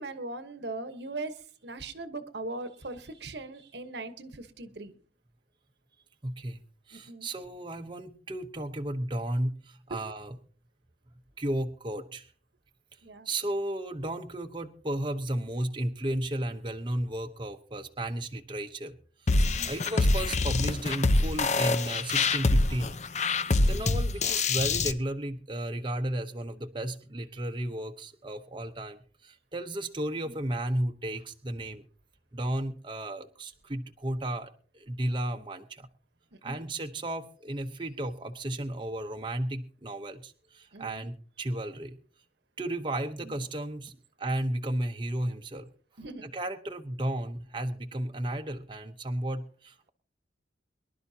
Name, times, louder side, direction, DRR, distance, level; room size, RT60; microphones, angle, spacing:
voice 1, 0.0-5.0 6.9-7.3 9.9-10.0 13.0-13.3 19.6-19.8 23.5-23.8 30.2-30.4 36.3-36.6 40.7-41.1 43.2-43.4 46.0-46.3, right 2 dB, 70° right, 10 dB, 1.2 m, -40 dB
voice 2, 6.2-6.6 6.9-10.3 11.4-12.3 13.2-23.0 23.7-31.8 32.3-35.9 36.4-42.0 42.6-45.7 46.2-49.9, right 1 dB, 25° right, 4 dB, 0.9 m, -34 dB
sound 1, 19.3-24.9, left 3 dB, 40° left, 0.7 m, -25 dB
24.0 x 11.5 x 2.8 m, 0.39 s
head